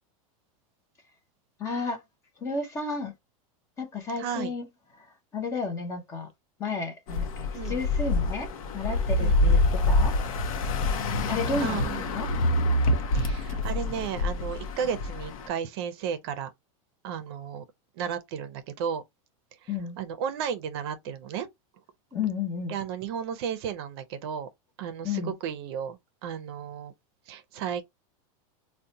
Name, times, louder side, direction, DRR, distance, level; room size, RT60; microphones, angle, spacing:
voice 1, 1.6-2.0 2.4-3.1 3.8-4.6 5.0-6.3 6.6-10.2 11.3-11.8 12.1-12.3 19.7-20.0 22.1-22.7 25.0-25.3, left 4 dB, 15° left, 0.5 m, -32 dB
voice 2, 4.2-4.5 7.5-7.8 9.2-9.6 11.6-12.1 13.1-16.5 17.0-17.6 18.0-19.0 19.6-19.7 20.0-21.5 22.7-24.5 24.8-26.9 27.3-27.8, right 8 dB, 50° right, 0.5 m, -34 dB
sound 1, 7.1-15.5, left 2 dB, 85° left, 0.7 m, -26 dB
3.9 x 2.1 x 2.6 m
supercardioid pair, 170°, 17 cm